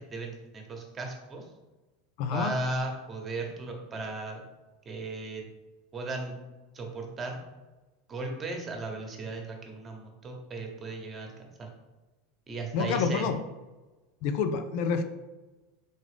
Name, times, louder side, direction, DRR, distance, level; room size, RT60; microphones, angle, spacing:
voice 1, 0.1-1.5 2.3-4.4 4.8-5.4 5.9-6.3 6.7-7.4 8.1-11.7 12.5-13.3, right 2 dB, 30° right, 2 dB, 1.1 m, -36 dB
voice 2, 2.2-2.5 12.7-13.4 14.2-15.0, left 5 dB, 60° left, 8 dB, 0.4 m, -27 dB
3.8 x 3.7 x 3.3 m, 1.1 s
hypercardioid pair, 85°, 0 cm